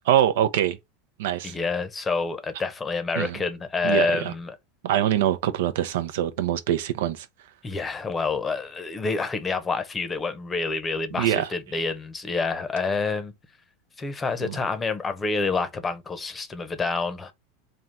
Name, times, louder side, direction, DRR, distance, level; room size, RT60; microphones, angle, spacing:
voice 1, 0.1-0.8 1.2-1.5 3.2-3.4 3.8-4.3 4.8-7.3 11.1-11.5 14.4-14.6, right 11 dB, 75° right, 0.6 m, -24 dB
voice 2, 1.4-4.6 7.6-13.3 14.0-17.3, left 4 dB, 20° left, 0.8 m, -28 dB
3.6 x 2.3 x 4.1 m
hypercardioid pair, 110°, 0 cm